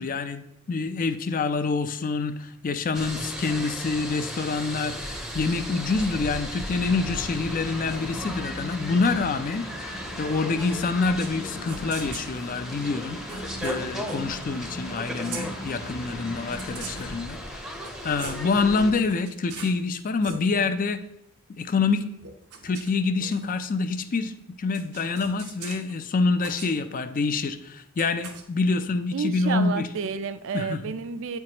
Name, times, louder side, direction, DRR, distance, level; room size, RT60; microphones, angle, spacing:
voice 1, 0.0-17.7 18.0-21.0 21.6-22.1 22.6-24.3 24.6-29.9 30.5-30.8, left 4 dB, 40° left, 10 dB, 0.4 m, -26 dB
sound 1, 2.9-18.9, equal, ahead, 0.6 m, -36 dB
sound 2, 6.8-17.2, left 1 dB, 75° left, 1.0 m, -39 dB
sound 3, 11.2-11.4 11.7-12.3 13.3-14.2 14.9-15.5 16.5-17.1 17.7-18.5 19.0-19.8 20.1-20.4 22.2-23.7 24.7-25.9 26.4-26.7 28.0-28.4, right 5 dB, 90° right, 0.8 m, -41 dB
voice 2, 29.1-31.4, right 5 dB, 60° right, 11 dB, 0.4 m, -30 dB
8.5 x 4.6 x 2.9 m, 0.78 s
head